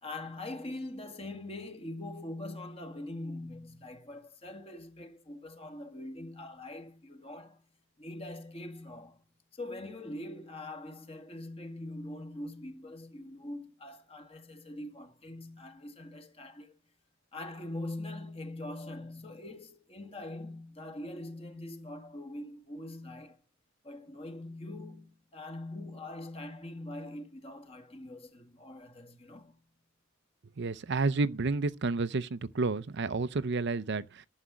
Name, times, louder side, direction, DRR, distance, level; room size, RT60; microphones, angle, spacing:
voice 1, 0.0-7.6 8.0-9.2 9.5-16.8 17.3-23.4 23.8-29.6, left 1 dB, 30° left, 2.1 m, -43 dB
voice 2, 30.6-34.3, right 3 dB, 60° right, 0.6 m, -30 dB
11.5 x 7.4 x 8.2 m
head